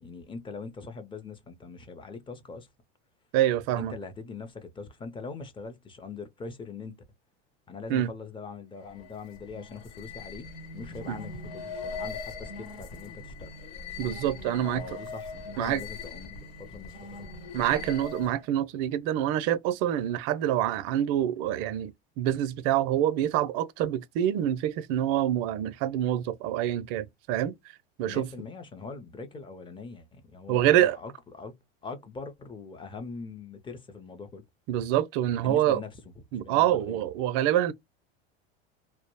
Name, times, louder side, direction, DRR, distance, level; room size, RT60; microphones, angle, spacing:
voice 1, 0.0-2.7 3.8-7.0 7.7-10.5 10.7-13.5 14.6-17.3 28.1-34.4 35.4-36.0 36.3-37.0, left 4 dB, 15° left, 0.5 m, -42 dB
voice 2, 3.3-4.0 7.9-8.1 11.1-11.2 14.0-14.8 15.6-15.8 17.5-27.6 28.0-28.3 30.5-31.0 34.7-35.8 36.3-37.7, right 12 dB, 55° right, 0.4 m, -26 dB
sound 1, 8.7-18.5, left 4 dB, 65° left, 1.0 m, -41 dB
2.3 x 2.0 x 2.9 m
supercardioid pair, 105°, 31 cm